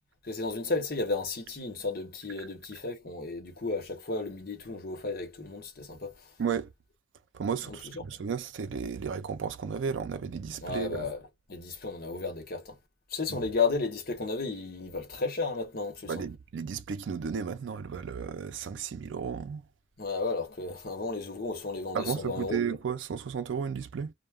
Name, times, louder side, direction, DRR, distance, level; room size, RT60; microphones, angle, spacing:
voice 1, 0.2-6.1 7.7-8.0 10.6-11.2 11.5-12.8 13.1-16.2 20.0-22.6, left 3 dB, 55° left, 0.9 m, -33 dB
voice 2, 6.4-6.7 7.3-11.1 13.3-13.4 16.1-19.6 21.9-24.1, right 6 dB, 75° right, 0.4 m, -33 dB
2.2 x 2.1 x 3.3 m
head